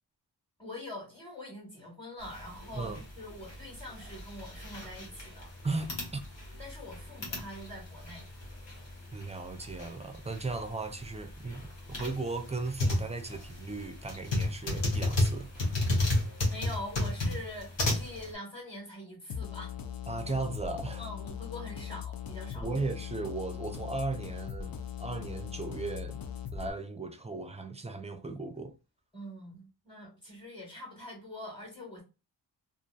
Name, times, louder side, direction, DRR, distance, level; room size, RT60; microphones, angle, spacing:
voice 1, 0.6-5.5 6.6-8.3 16.4-19.7 21.0-22.7 29.1-32.0, left 1 dB, 10° left, 1.3 m, -44 dB
sound 1, 2.3-18.3, left 2 dB, 85° left, 1.0 m, -33 dB
voice 2, 5.6-6.2 9.1-15.8 20.1-21.1 22.5-26.2 26.5-28.7, right 3 dB, 15° right, 0.4 m, -36 dB
sound 2, 19.3-26.7, left 8 dB, 55° left, 0.5 m, -40 dB
2.6 x 2.5 x 2.3 m
wide cardioid pair, 80°, 43 cm